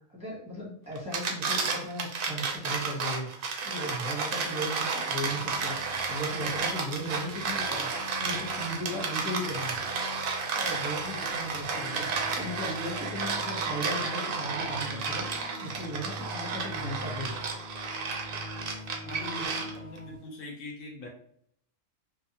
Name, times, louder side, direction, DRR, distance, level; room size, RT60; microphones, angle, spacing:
voice 1, 0.1-7.9 8.2-9.9 10.6-17.3 19.4-19.5, equal, 5° right, -5 dB, 0.6 m, -37 dB
sound 1, 0.9-20.0, right 5 dB, 60° right, 0.6 m, -32 dB
sound 2, 5.2-20.2, left 2 dB, 50° left, 0.9 m, -44 dB
voice 2, 19.0-21.1, left 2 dB, 85° left, 1 dB, 1.1 m, -43 dB
2.7 x 2.2 x 2.7 m, 0.69 s
omnidirectional pair, 1.3 m